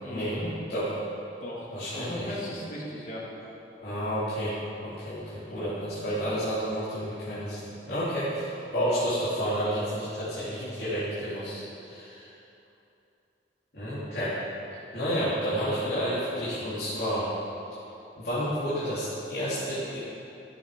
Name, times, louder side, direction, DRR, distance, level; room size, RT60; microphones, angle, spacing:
voice 1, 0.0-0.5 1.4-1.7 1.9-3.3 5.4-5.9 7.8-8.2 10.4-10.7, left 1 dB, 45° left, -4 dB, 1.7 m, -38 dB
voice 2, 1.7-2.2 3.8-12.3 13.7-14.4 14.9-17.3 18.2-20.0, equal, 65° left, -12 dB, 2.6 m, -30 dB
13.5 x 7.0 x 4.9 m, 2.8 s
head